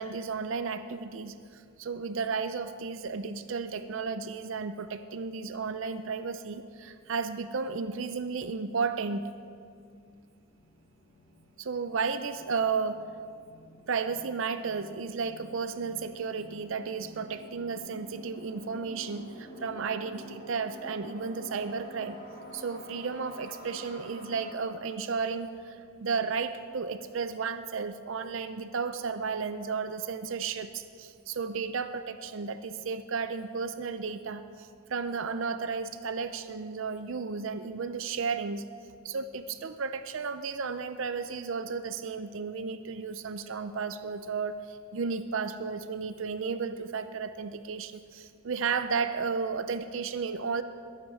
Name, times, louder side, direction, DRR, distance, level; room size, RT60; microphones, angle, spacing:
voice 1, 0.0-9.3 11.6-13.1 13.9-22.2 22.5-38.7 39.0-50.6, right 5 dB, 65° right, 11 dB, 0.5 m, -33 dB
sound 1, 9.7-24.7, equal, 55° left, 4.0 m, -49 dB
21.5 x 9.2 x 4.8 m, 2.3 s
head